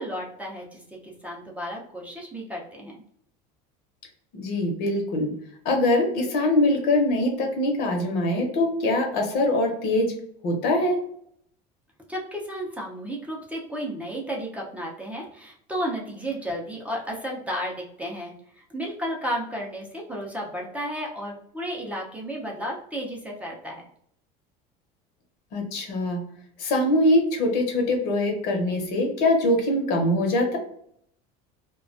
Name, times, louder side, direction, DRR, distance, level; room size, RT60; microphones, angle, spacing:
voice 1, 0.0-3.0 12.1-23.8, equal, 10° right, -2 dB, 0.5 m, -33 dB
voice 2, 4.3-5.4 5.6-10.1 10.4-11.0 25.5-26.3 26.6-30.6, left 1 dB, 60° left, 3 dB, 0.8 m, -23 dB
2.3 x 2.2 x 2.5 m, 0.67 s
supercardioid pair, 130°, 18 cm